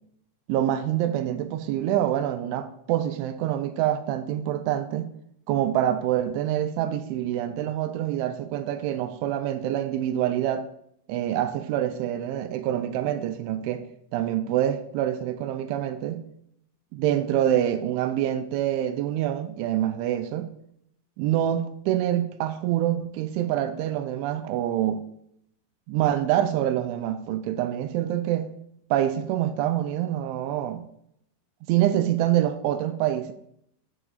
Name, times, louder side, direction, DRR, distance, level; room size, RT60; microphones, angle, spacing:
voice 1, 0.5-5.1 5.5-10.7 11.1-13.8 14.1-16.2 16.9-20.5 21.2-25.0 25.9-28.5 28.9-30.8 31.6-33.3, right 11 dB, 80° right, 3.0 m, -26 dB
7.5 x 6.1 x 6.6 m
omnidirectional pair, 5.6 m